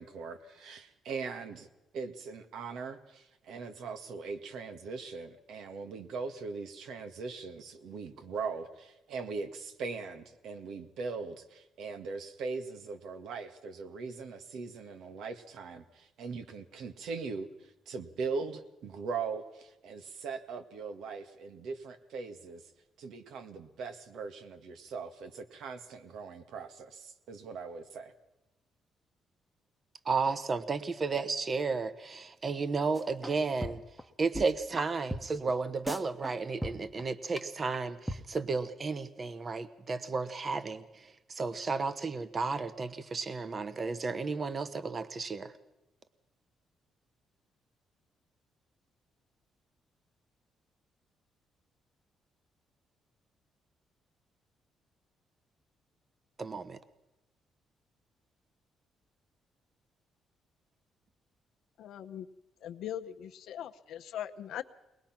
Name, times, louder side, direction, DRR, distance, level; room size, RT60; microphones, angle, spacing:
voice 1, 0.0-1.7 1.9-22.6 23.0-28.1, right 4 dB, 75° right, 8 dB, 1.8 m, -40 dB
voice 2, 30.0-33.8 34.2-40.8 41.3-45.5 56.4-56.8, right 4 dB, 35° right, 13 dB, 1.1 m, -33 dB
sound 1, 32.9-33.4 33.6-34.0 34.3-34.4 34.7-34.8 35.1-35.2 35.5-35.6 35.9-36.3 36.6-37.0 37.4-37.5 37.7-37.8 38.1-38.2, equal, 5° right, 1.2 m, -36 dB
voice 3, 61.8-62.3 62.6-64.6, left 10 dB, 80° left, 8 dB, 0.9 m, -40 dB
22.5 x 20.0 x 6.0 m, 1.0 s
cardioid pair, 90°, 0 cm